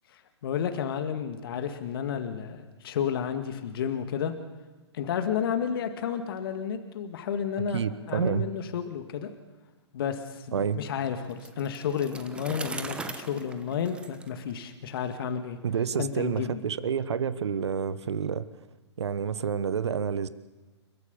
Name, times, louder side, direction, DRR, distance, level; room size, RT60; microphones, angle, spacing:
voice 1, 0.1-4.3 4.9-7.8 8.1-9.3 9.9-15.6 16.0-16.7, left 8 dB, 55° left, 7 dB, 1.9 m, -31 dB
voice 2, 7.7-8.5 10.5-10.8 15.6-18.5 19.0-20.3, right 7 dB, 70° right, 15 dB, 1.2 m, -29 dB
Bicycle, 11.3-15.1, right 3 dB, 5° right, 1.1 m, -41 dB
30.0 x 13.5 x 6.9 m, 1.2 s
hypercardioid pair, 125°, 15 cm